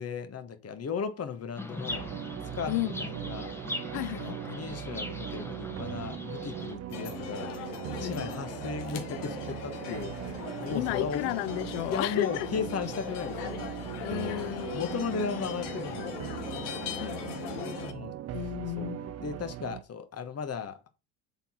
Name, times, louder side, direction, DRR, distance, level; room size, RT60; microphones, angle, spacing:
voice 1, 0.0-2.1 2.5-3.5 4.1-7.5 8.0-11.2 11.9-18.2 18.8-18.9 19.2-20.9, left 6 dB, 35° left, 1.3 m, -36 dB
Chirp tweet, 1.6-6.7, left 1 dB, 5° left, 1.3 m, -40 dB
sound 1, 1.9-19.8, right 12 dB, 35° right, 0.5 m, -39 dB
voice 2, 3.9-4.4 7.9-8.2 10.7-12.5 14.0-14.8 17.0-17.4 18.3-19.1, left 20 dB, 65° left, 0.5 m, -33 dB
sound 2, 6.9-17.9, left 8 dB, 90° left, 1.3 m, -40 dB
7.1 x 3.9 x 4.3 m
supercardioid pair, 85°, 44 cm